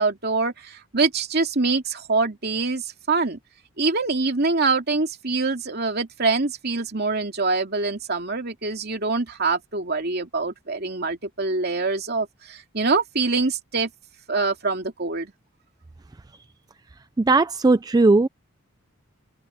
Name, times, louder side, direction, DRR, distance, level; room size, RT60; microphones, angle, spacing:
voice 1, 0.0-3.4 3.8-13.9 14.3-15.3, right 3 dB, 50° right, 2.7 m, -24 dB
voice 2, 17.2-18.3, right 3 dB, 20° right, 0.3 m, -17 dB
head